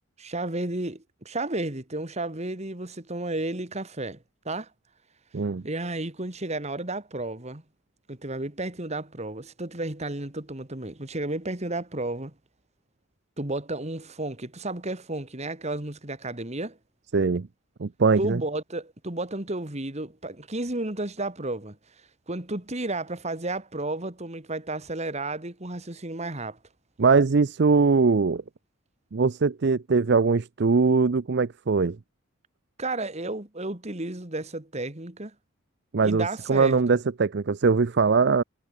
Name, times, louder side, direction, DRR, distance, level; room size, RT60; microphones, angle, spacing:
voice 1, 0.2-4.7 5.6-7.6 8.1-12.3 13.4-16.8 18.2-21.8 22.3-26.6 32.8-35.3 36.0-37.0, right 2 dB, 35° right, 2.3 m, -32 dB
voice 2, 17.1-17.5 17.8-18.4 27.0-28.4 29.1-32.0 35.9-38.4, right 4 dB, 55° right, 0.5 m, -21 dB
head